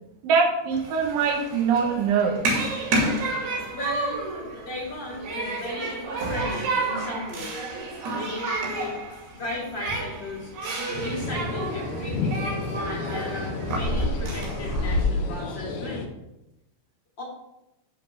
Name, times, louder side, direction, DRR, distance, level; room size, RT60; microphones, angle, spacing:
voice 1, 0.2-2.4, right 5 dB, 85° right, -1 dB, 3.8 m, -23 dB
Human group actions, 0.7-15.0, right 2 dB, 60° right, 4.0 m, -30 dB
voice 2, 3.7-4.3 4.6-7.7 8.1-9.0 9.3-10.5 10.9-12.4 12.8-16.1 17.2-17.3, left 2 dB, 30° left, -4 dB, 2.7 m, -36 dB
sound 1, 10.9-16.1, left 3 dB, 65° left, 2.6 m, -32 dB
12.5 x 4.3 x 5.9 m, 0.89 s
omnidirectional pair, 5.2 m